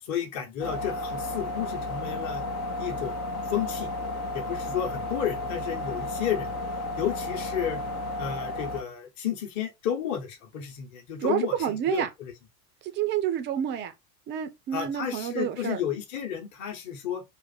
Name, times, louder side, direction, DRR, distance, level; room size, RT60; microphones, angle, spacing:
voice 1, 0.0-2.4 2.8-3.9 4.3-6.5 7.0-7.8 8.2-12.3 14.7-17.2, left 9 dB, 35° left, 1.0 m, -32 dB
sound 1, 0.6-8.8, left 1 dB, 60° left, 0.8 m, -33 dB
voice 2, 11.2-12.1 12.8-13.9 14.3-15.8, right 10 dB, 25° right, 0.4 m, -29 dB
2.5 x 2.4 x 4.1 m
figure-of-eight pair, 80°, 50 cm